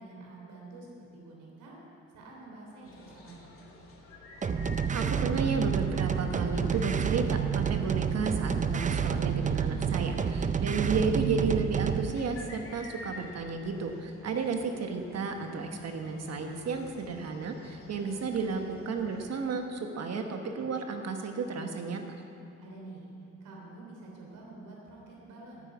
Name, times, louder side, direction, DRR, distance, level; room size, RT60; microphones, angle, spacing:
voice 1, 0.0-1.8 2.1-3.5 22.6-23.1 23.4-25.7, right 2 dB, 85° right, -2 dB, 3.4 m, -48 dB
sound 1, 2.8-19.2, left 2 dB, 45° left, 2.4 m, -51 dB
sound 2, 4.4-12.1, right 7 dB, 25° right, 0.5 m, -29 dB
voice 2, 4.9-22.0, right 4 dB, 55° right, 5 dB, 1.1 m, -32 dB
9.8 x 9.2 x 8.5 m, 2.7 s
cardioid pair, 90°, 30 cm